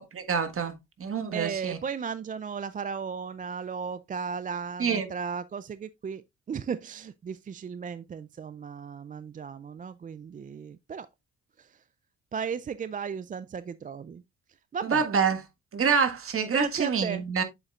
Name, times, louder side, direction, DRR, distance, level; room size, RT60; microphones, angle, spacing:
voice 1, 0.1-0.7 1.0-1.8 4.8-5.1 14.8-15.4 15.7-17.4, right 6 dB, 45° right, 1.5 m, -26 dB
voice 2, 1.3-6.2 6.5-11.1 11.6-11.7 12.3-14.2 14.7-15.0 16.5-17.2, right 6 dB, 30° right, 0.4 m, -35 dB
7.9 x 7.4 x 2.4 m
cardioid pair, 90°, 30 cm